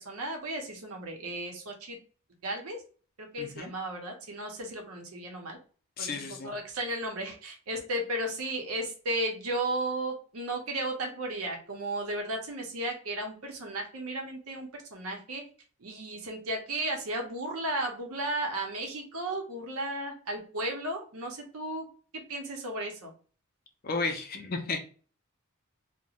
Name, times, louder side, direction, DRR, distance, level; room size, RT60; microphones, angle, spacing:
voice 1, 0.1-2.0 2.4-2.8 3.2-5.6 6.0-15.4 15.8-21.9 22.1-23.1, right 1 dB, 80° right, 2 dB, 0.7 m, -34 dB
voice 2, 3.4-3.7 6.0-6.5 23.8-24.8, left 4 dB, 40° left, 4 dB, 0.4 m, -33 dB
2.4 x 2.1 x 2.8 m, 0.40 s
head